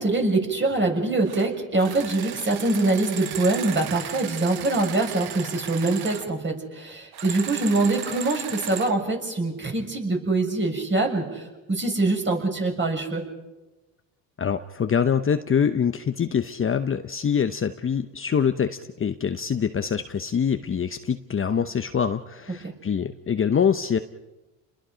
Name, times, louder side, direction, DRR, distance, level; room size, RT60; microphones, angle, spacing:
voice 1, 0.0-11.4 11.7-13.2 22.6-22.7, right 2 dB, 30° right, 2 dB, 6.3 m, -24 dB
sound 1, 1.2-1.5 1.8-6.3 7.1-8.9, right 10 dB, 65° right, 1.6 m, -36 dB
voice 2, 14.4-24.0, left 7 dB, 30° left, 8 dB, 0.9 m, -24 dB
30.0 x 21.5 x 5.2 m, 1.1 s
supercardioid pair, 80°, 41 cm